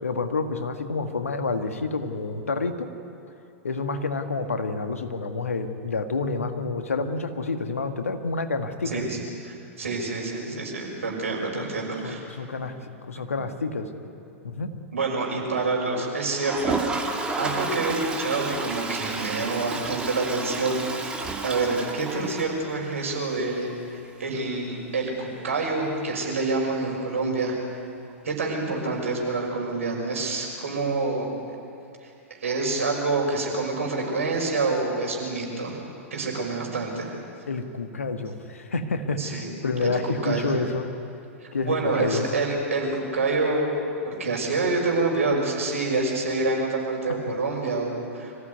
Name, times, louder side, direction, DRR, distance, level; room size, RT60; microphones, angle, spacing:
voice 1, 0.0-2.9 3.6-9.0 11.5-11.7 12.0-12.7 13.0-13.9 14.4-14.7 37.5-40.9 41.5-42.3, left 3 dB, 75° left, 7 dB, 1.7 m, -29 dB
voice 2, 8.8-9.2 9.4-12.2 14.9-27.5 28.2-31.3 32.0-35.8 36.1-37.1 39.2-39.5 39.8-40.5 41.4-43.7 44.0-48.4, right 3 dB, 70° right, 0 dB, 5.9 m, -27 dB
Toilet flush, 16.3-23.1 23.4-23.5 23.7-23.8 24.0-24.1 26.7-26.8 28.1-28.2, right 3 dB, 10° right, 2.6 m, -31 dB
25.0 x 16.0 x 9.5 m, 2.6 s
figure-of-eight pair, 100°, 8 cm